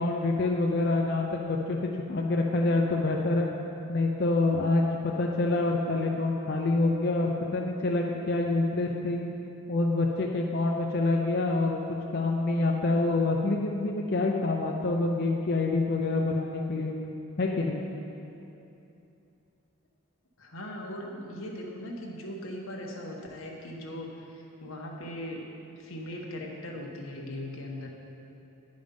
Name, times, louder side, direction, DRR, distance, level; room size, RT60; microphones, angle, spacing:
voice 1, 0.0-3.5 3.9-9.3 9.7-16.9 17.4-17.8, left 2 dB, 50° left, 0 dB, 0.5 m, -26 dB
voice 2, 20.4-25.4 25.8-27.9, left 1 dB, 90° left, 0 dB, 1.2 m, -39 dB
10.0 x 5.2 x 5.3 m, 2.8 s
head